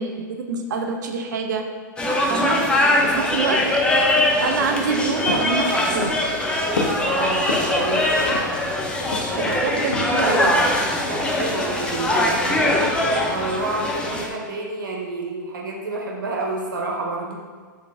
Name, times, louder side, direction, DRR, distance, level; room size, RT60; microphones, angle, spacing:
voice 1, 0.0-1.6 2.3-2.7 3.0-3.8 4.4-6.1 9.3-10.7, right 5 dB, 65° right, 4 dB, 0.5 m, -26 dB
sound 1, 2.0-14.3, left 1 dB, 10° left, 0.5 m, -22 dB
voice 2, 2.9-3.3 7.0-8.2 11.0-17.3, right 2 dB, 80° right, -1 dB, 0.9 m, -29 dB
sound 2, 4.5-8.7 9.1-9.5 9.9-10.1, left 2 dB, 80° left, 0.8 m, -29 dB
3.9 x 3.4 x 3.3 m, 1.5 s
hypercardioid pair, 115°, 11 cm